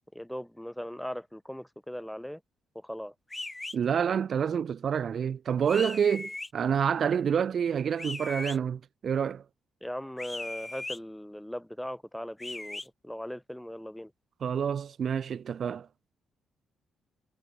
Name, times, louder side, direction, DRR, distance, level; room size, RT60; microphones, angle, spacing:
voice 1, 0.1-2.4 2.7-3.1 9.8-14.1, equal, 5° left, 2.4 m, -39 dB
sound 1, 3.3-3.8 5.7-6.5 8.0-8.6 10.2-11.0 12.4-12.9, left 2 dB, 20° left, 2.0 m, -38 dB
voice 2, 3.7-9.4 14.4-15.9, right 7 dB, 50° right, 1.2 m, -28 dB
figure-of-eight pair, 40°, 0 cm